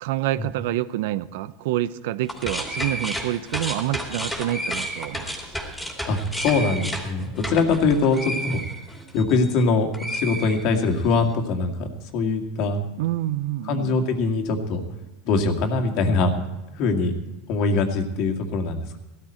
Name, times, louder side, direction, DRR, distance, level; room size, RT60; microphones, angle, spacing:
voice 1, 0.0-5.4 13.0-14.0, right 14 dB, 75° right, 16 dB, 0.7 m, -27 dB
sound 1, 2.2-9.6 9.9-11.1, equal, 5° left, 2.8 m, -32 dB
voice 2, 6.0-8.6 9.1-12.8 13.7-14.8 15.2-16.3 16.7-17.2 17.5-19.0, left 3 dB, 55° left, 4 dB, 2.1 m, -23 dB
16.5 x 13.5 x 4.4 m, 1.0 s
supercardioid pair, 130°, 0 cm